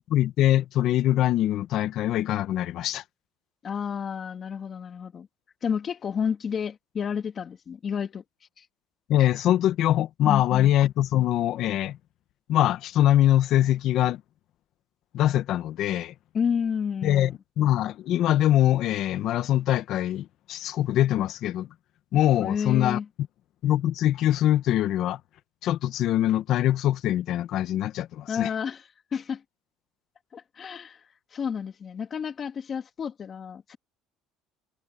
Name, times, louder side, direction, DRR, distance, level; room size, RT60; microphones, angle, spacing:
voice 1, 0.0-3.0 9.1-12.0 12.5-14.2 15.1-16.1 17.0-21.7 22.1-23.0 23.6-25.2 25.6-28.5, left 12 dB, 60° left, 1.6 m, -23 dB
voice 2, 3.6-5.3 5.6-8.2 8.6-8.7 10.2-10.7 16.3-17.3 22.4-23.0 28.3-28.8 29.1-29.4 30.3-33.8, left 7 dB, 35° left, 2.3 m, -30 dB
cardioid pair, 125°, 0 cm